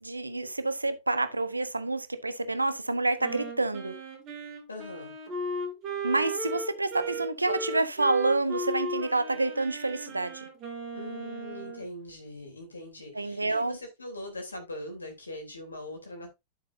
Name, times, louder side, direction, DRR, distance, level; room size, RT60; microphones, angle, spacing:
voice 1, 0.0-3.9 6.0-10.4 13.1-13.8, right 2 dB, 80° right, 0.9 m, -28 dB
Wind instrument woodwind instrument, 3.2-11.9, right 2 dB, 35° right, 3.9 m, -36 dB
voice 2, 4.7-5.1 10.9-16.3, left 1 dB, 80° left, 3.2 m, -41 dB
9.8 x 8.0 x 2.6 m
figure-of-eight pair, 90°, 0 cm